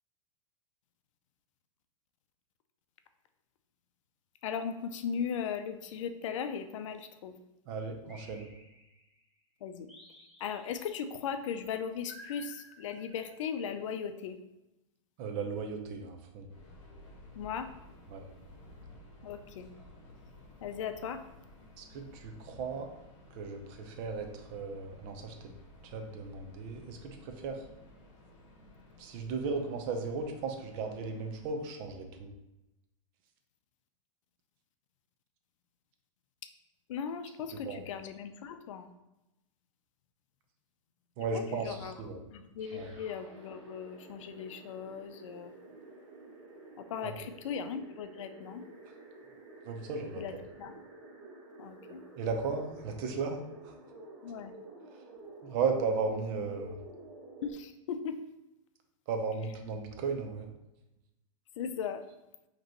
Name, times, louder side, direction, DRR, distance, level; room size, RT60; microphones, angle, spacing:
voice 1, 4.4-7.4 9.6-9.9 10.4-14.4 17.3-17.7 19.2-19.7 20.6-21.2 36.9-38.9 41.3-41.9 42.3-45.5 46.8-48.6 50.2-50.3 50.6-50.7 51.6-52.0 54.2-54.5 57.4-58.2 61.6-62.0, left 7 dB, 75° left, 9 dB, 0.5 m, -38 dB
voice 2, 7.7-8.5 15.2-16.5 18.1-18.3 21.8-22.9 23.3-25.5 25.8-27.6 29.0-32.3 37.5-37.8 41.2-42.2 42.7-42.9 47.0-47.1 49.6-50.2 52.2-53.4 53.6-53.7 55.4-56.8 59.1-60.5, right 4 dB, 40° right, 5 dB, 0.7 m, -35 dB
sound 1, 8.1-9.2 9.9-11.0 12.1-13.6, equal, ahead, 1.0 m, -54 dB
Subway metro underground, 16.5-31.8, left 1 dB, 40° left, 1.3 m, -55 dB
sound 2, 42.6-57.5, right 2 dB, 60° right, 1.4 m, -51 dB
5.1 x 3.0 x 3.0 m, 0.94 s
supercardioid pair, 140°, 17 cm